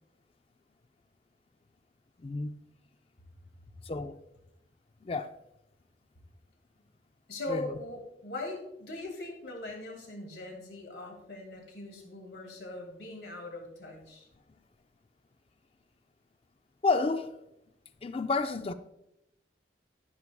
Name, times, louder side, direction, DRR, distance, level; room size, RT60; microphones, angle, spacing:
voice 1, 2.2-2.5 3.9-4.2 5.0-5.3 7.5-7.6 16.8-17.3 18.0-18.7, left 3 dB, 35° left, 0.4 m, -30 dB
voice 2, 7.3-14.3, left 2 dB, 80° left, 2.2 m, -40 dB
14.0 x 5.5 x 2.3 m
head